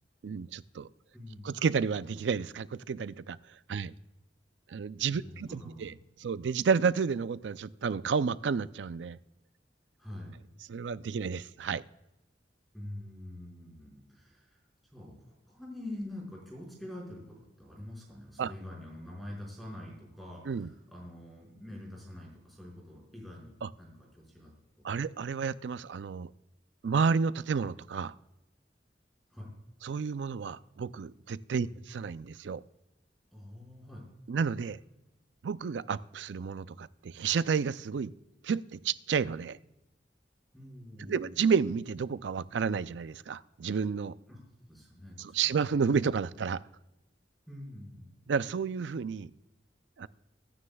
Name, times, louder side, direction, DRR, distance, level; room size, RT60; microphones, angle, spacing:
voice 1, 0.2-0.9 1.4-3.4 3.7-3.9 4.7-5.9 6.2-9.2 10.7-11.8 18.4-18.5 20.5-20.7 23.6-23.7 24.8-26.3 26.8-28.1 29.8-31.7 31.9-32.6 34.3-34.8 35.4-38.1 38.4-39.6 41.0-44.2 45.2-46.6 48.3-49.3 50.0-50.1, right 6 dB, 85° right, 16 dB, 0.4 m, -31 dB
voice 2, 1.1-1.5 5.1-5.9 10.0-10.4 12.7-14.6 14.9-23.5 23.8-24.5 29.3-29.5 31.6-31.8 33.3-34.1 40.5-41.4 44.3-44.4 44.7-45.6 47.5-48.2, left 1 dB, ahead, -3 dB, 5.0 m, -45 dB
24.0 x 9.7 x 2.3 m, 0.93 s
head